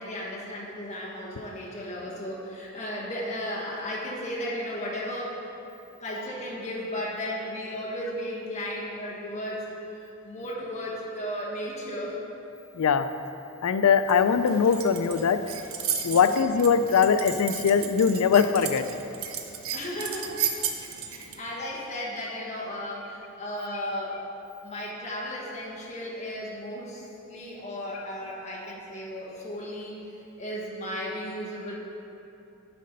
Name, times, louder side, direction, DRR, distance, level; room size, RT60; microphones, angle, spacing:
voice 1, 0.0-5.4 6.0-12.2 16.1-16.4 19.7-20.4 21.0-24.2 24.6-31.8, equal, 30° left, -5 dB, 1.3 m, -35 dB
voice 2, 12.7-13.1 13.6-15.4 16.0-18.8, left 6 dB, 80° left, 10 dB, 0.4 m, -21 dB
sound 1, 14.1-21.4, right 8 dB, 70° right, 0.6 m, -35 dB
9.3 x 4.3 x 5.3 m, 2.8 s
head